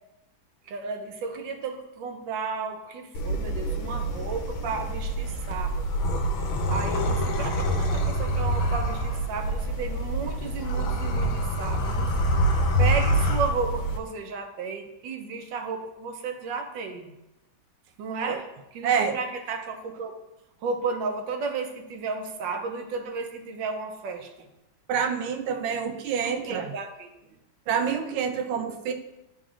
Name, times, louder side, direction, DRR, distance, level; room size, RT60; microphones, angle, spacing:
voice 1, 0.7-5.9 6.7-12.1 12.8-17.1 18.0-18.5 18.7-20.1 20.6-24.5 26.2-27.1, right 4 dB, 75° right, 5 dB, 1.4 m, -33 dB
Soft Growl (Right), 3.1-14.0, right 1 dB, 80° left, 1.6 m, -26 dB
voice 2, 18.8-19.2 24.9-26.7 27.7-28.9, right 7 dB, 90° right, 5 dB, 1.5 m, -27 dB
11.5 x 3.9 x 2.4 m, 0.93 s
omnidirectional pair, 2.1 m